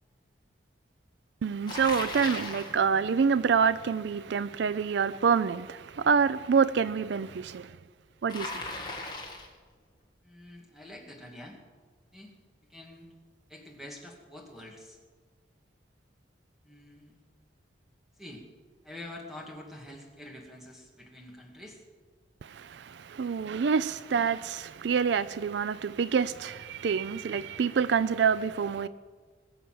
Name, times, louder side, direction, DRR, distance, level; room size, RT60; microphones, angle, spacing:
voice 1, 1.4-7.8 8.2-8.6 22.4-28.9, right 6 dB, 65° right, 0.4 m, -27 dB
Bicycle, 1.7-2.8 8.3-9.6, left 2 dB, 25° left, 1.9 m, -37 dB
voice 2, 10.2-11.6 12.1-12.3 12.7-13.1 13.5-15.0 16.6-17.2 18.2-18.4 18.8-21.8, left 1 dB, ahead, 2.3 m, -46 dB
20.5 x 7.0 x 7.8 m
head